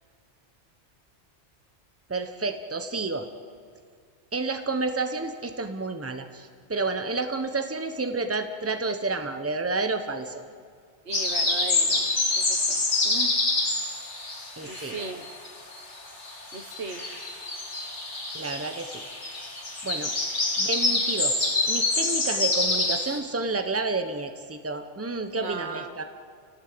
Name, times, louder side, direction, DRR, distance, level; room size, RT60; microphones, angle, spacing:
voice 1, 2.1-3.3 4.3-10.4 14.6-15.0 18.3-19.0 19.3-19.4 19.8-20.1 20.6-26.0, right 3 dB, 15° right, 7 dB, 1.1 m, -30 dB
sound 1, 11.1-15.5 15.7-23.2, left 2 dB, 80° left, 2.8 m, -27 dB
voice 2, 11.1-12.1 12.4-13.4 14.6-15.2 16.5-17.0 25.3-25.9, right 4 dB, 70° right, 8 dB, 1.5 m, -37 dB
30.0 x 18.0 x 8.0 m, 2.2 s
omnidirectional pair, 1.2 m